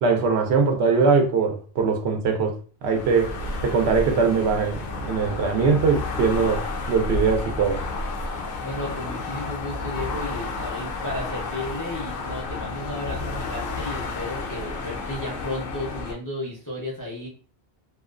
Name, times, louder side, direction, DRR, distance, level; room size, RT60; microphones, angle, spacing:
voice 1, 0.0-2.5 2.8-3.3 3.6-6.6 6.9-7.8, right 5 dB, 75° right, 0.8 m, -21 dB
sound 1, 2.8-16.1, left 3 dB, 60° left, 0.7 m, -31 dB
voice 2, 8.6-17.3, left 1 dB, 25° left, 0.5 m, -33 dB
2.4 x 2.2 x 2.3 m
omnidirectional pair, 1.1 m